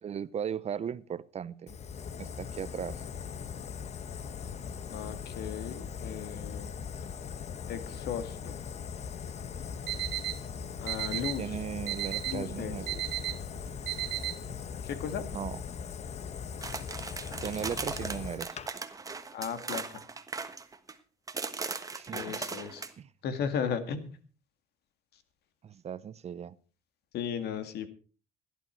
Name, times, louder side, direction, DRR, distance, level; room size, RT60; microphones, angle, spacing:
voice 1, 0.0-1.8 2.2-3.0 11.1-13.0 15.3-15.6 17.4-18.6 21.9-22.6 23.0-23.1 25.6-26.5, right 8 dB, 40° right, 18 dB, 0.7 m, -37 dB
Fire, 1.7-18.7, left 7 dB, 40° left, 1.0 m, -40 dB
voice 2, 4.9-6.7 7.7-8.6 10.8-11.4 12.3-12.7 14.8-15.3 19.3-20.0 22.1-22.8 23.2-24.1 27.1-27.9, left 7 dB, 70° left, 10 dB, 2.1 m, -35 dB
Alarm, 9.6-14.6, right 15 dB, 85° right, 0.7 m, -36 dB
sound 1, 16.6-20.9 21.3-22.9, right 4 dB, 20° right, 1.3 m, -38 dB
17.5 x 11.5 x 4.5 m, 0.36 s
cardioid pair, 110°, 17 cm